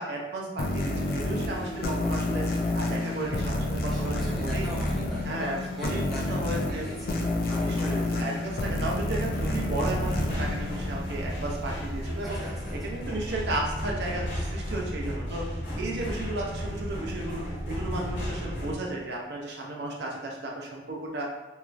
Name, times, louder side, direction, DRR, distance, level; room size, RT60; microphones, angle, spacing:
voice 1, 0.0-4.7 5.2-6.9 7.6-12.4 12.8-15.4 15.8-21.3, right 2 dB, 60° right, -2 dB, 0.5 m, -34 dB
sound 1, 0.6-11.8, left 2 dB, 55° left, 0.4 m, -29 dB
voice 2, 3.8-7.2 7.4-8.2 12.3-13.0, equal, ahead, -9 dB, 0.8 m, -40 dB
sound 2, 9.3-18.7, equal, 85° left, 1.2 m, -34 dB
3.1 x 2.3 x 2.4 m, 1.1 s
head